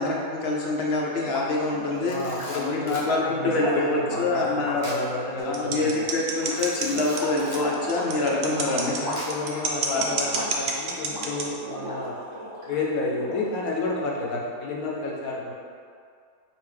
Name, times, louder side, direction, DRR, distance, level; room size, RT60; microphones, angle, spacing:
voice 1, 0.0-4.8 5.4-8.9 9.8-10.0, left 2 dB, 60° left, -3 dB, 0.7 m, -26 dB
sound 1, 1.2-12.8 13.1-14.0, equal, 20° right, 0.8 m, -36 dB
Camera, 1.9-3.1 4.8-5.1 5.4-5.5 6.5-7.7 9.2-9.6, equal, 20° left, 0.7 m, -41 dB
voice 2, 2.1-6.0 8.7-12.2 12.7-15.5, left 3 dB, 90° left, -3 dB, 1.2 m, -31 dB
sound 2, 5.5-11.4, right 5 dB, 65° right, 0.9 m, -28 dB
4.9 x 2.7 x 3.3 m, 2.3 s
omnidirectional pair, 1.4 m